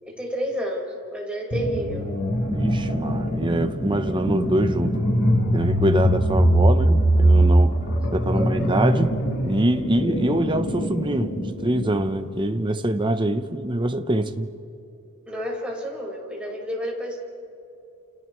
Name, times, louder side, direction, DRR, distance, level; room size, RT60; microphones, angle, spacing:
voice 1, 0.0-2.1 8.3-8.6 15.3-17.2, equal, 5° right, 4.8 m, -30 dB
sound 1, 1.5-12.0, right 1 dB, 75° left, 5.1 m, -22 dB
voice 2, 2.5-5.0 5.5-7.8 8.1-9.1 9.4-14.5, right 1 dB, 20° right, 0.8 m, -24 dB
29.5 x 29.0 x 3.2 m
head